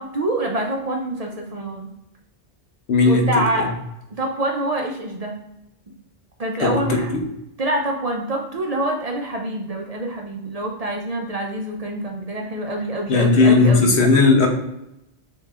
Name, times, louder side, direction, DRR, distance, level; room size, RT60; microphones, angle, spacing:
voice 1, 0.0-1.9 3.0-3.7 4.1-5.4 6.4-7.1 7.6-14.0, right 1 dB, 45° right, 1 dB, 0.6 m, -26 dB
voice 2, 2.9-3.2 3.5-3.7 6.6-7.2 13.1-14.5, left 3 dB, 90° left, 3 dB, 1.1 m, -16 dB
6.3 x 3.0 x 2.4 m, 0.86 s
omnidirectional pair, 1.1 m